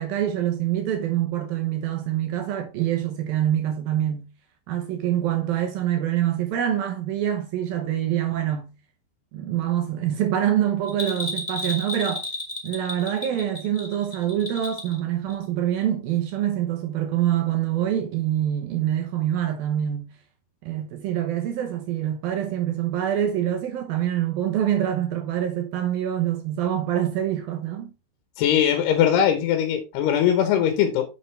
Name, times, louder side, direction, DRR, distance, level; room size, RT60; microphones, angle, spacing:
voice 1, 0.0-4.3 4.7-8.7 9.3-12.2 12.6-20.1 20.6-27.9, right 11 dB, 70° right, 2.4 m, -25 dB
Bell, 10.9-15.0 15.3-15.4, left 1 dB, 25° left, 1.0 m, -32 dB
voice 2, 28.4-31.1, left 9 dB, 75° left, 2.9 m, -20 dB
7.7 x 6.6 x 3.2 m
omnidirectional pair, 5.0 m